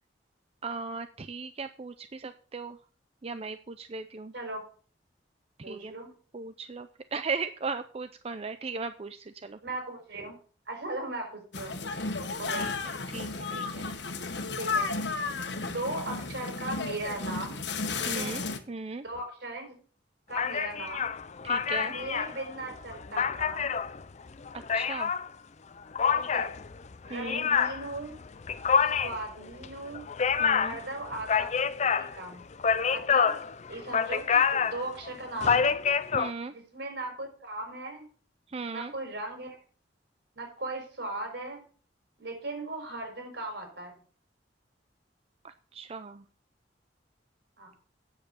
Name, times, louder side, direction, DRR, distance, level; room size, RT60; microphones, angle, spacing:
voice 1, 0.6-2.8 3.2-4.3 5.6-5.9 6.3-9.6 12.6-13.9 18.1-19.0 21.4-21.9 24.7-25.1 27.1-27.5 30.4-30.8 36.1-36.5 38.5-38.9 45.4-46.2, right 4 dB, 35° right, 10 dB, 0.5 m, -37 dB
voice 2, 5.6-6.1 9.6-10.3 10.7-11.8 12.4-12.7 14.6-14.9 15.6-17.6 18.0-18.4 19.0-19.7 20.3-21.1 21.8-23.7 26.1-26.5 27.0-28.1 29.0-30.0 30.6-31.5 31.9-32.4 32.9-33.4 33.7-35.7 36.5-38.0 38.7-39.6 40.3-41.6 42.2-43.9 47.6-47.7, right 2 dB, 70° right, 4 dB, 5.0 m, -38 dB
sound 1, 11.5-18.6, left 4 dB, 70° left, 1.4 m, -33 dB
sound 2, 20.3-25.3 25.9-36.3, left 6 dB, 40° left, 0.5 m, -27 dB
8.9 x 7.9 x 6.9 m, 0.41 s
head